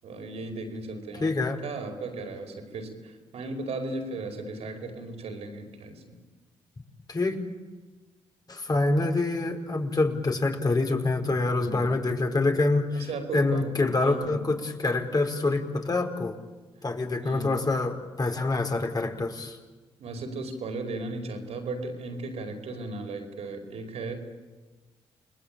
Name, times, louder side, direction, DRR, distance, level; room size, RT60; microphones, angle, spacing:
voice 1, 0.0-1.3 1.6-6.2 11.5-12.0 12.9-14.4 17.2-17.6 20.0-24.2, right 3 dB, 70° right, 6 dB, 4.9 m, -36 dB
voice 2, 1.2-1.6 7.1-7.4 8.5-16.3 16.8-19.6, left 2 dB, 35° left, 4 dB, 4.9 m, -26 dB
29.5 x 20.5 x 8.9 m, 1.3 s
supercardioid pair, 50°, 11 cm